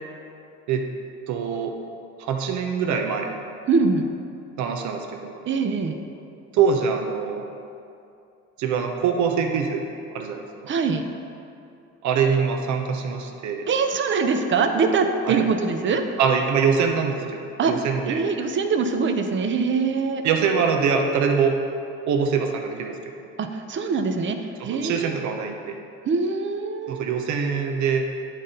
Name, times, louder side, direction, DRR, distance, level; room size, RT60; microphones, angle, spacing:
voice 1, 1.3-1.7 2.2-3.3 4.6-5.4 6.5-7.5 8.6-9.8 10.1-10.7 12.0-13.6 15.3-15.4 16.2-18.2 20.2-21.6 22.1-23.0 24.6-25.8 26.9-28.1, right 6 dB, 65° right, 3 dB, 0.9 m, -24 dB
voice 2, 3.7-4.1 5.5-6.0 10.7-11.0 13.7-16.0 17.6-17.7 18.1-20.2 23.4-24.4 24.6-25.2 26.1-27.0, right 4 dB, 35° right, 6 dB, 0.7 m, -23 dB
9.9 x 4.1 x 3.8 m, 2.6 s
supercardioid pair, 85°, 32 cm